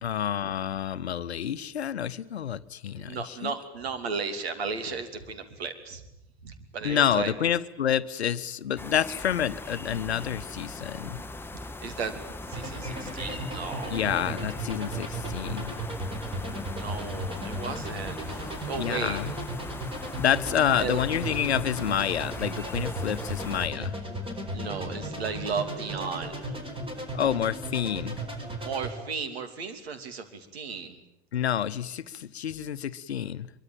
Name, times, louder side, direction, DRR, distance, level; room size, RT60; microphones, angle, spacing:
voice 1, 0.0-3.5 6.8-11.2 13.9-15.8 18.8-19.3 20.2-24.0 27.1-28.2 31.3-33.5, left 9 dB, 75° left, 14 dB, 0.9 m, -28 dB
voice 2, 2.9-6.0 6.4-7.3 11.8-12.2 12.4-14.1 16.5-19.2 20.8-21.0 23.7-23.9 24.5-26.7 28.6-31.0, right 5 dB, 65° right, 9 dB, 2.9 m, -35 dB
sound 1, 8.8-23.7, left 2 dB, 5° left, 1.0 m, -40 dB
sound 2, 12.5-28.9, right 1 dB, 15° right, 4.3 m, -36 dB
sound 3, 20.3-29.0, right 1 dB, 85° right, 6.9 m, -47 dB
23.5 x 23.0 x 9.1 m, 0.89 s
figure-of-eight pair, 80°, 33 cm